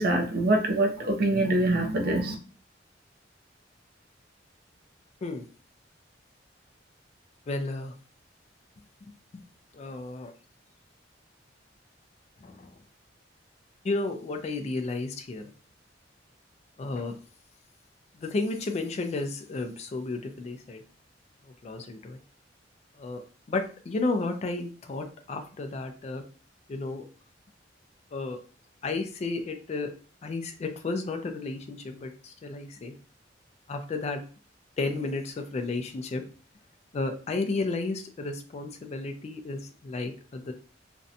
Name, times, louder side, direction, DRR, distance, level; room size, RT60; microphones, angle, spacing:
voice 1, 0.0-2.4, right 1 dB, 55° right, 5 dB, 0.5 m, -24 dB
voice 2, 7.5-7.9 9.3-9.4 9.7-10.3 12.4-12.7 13.8-15.5 16.8-17.2 18.1-20.8 21.6-22.2 23.0-23.2 23.5-26.2 26.7-27.1 28.1-28.4 28.8-29.9 30.2-33.0 33.7-34.2 34.8-36.2 36.9-40.5, left 3 dB, 35° left, 6 dB, 0.3 m, -32 dB
2.5 x 2.1 x 2.6 m, 0.37 s
head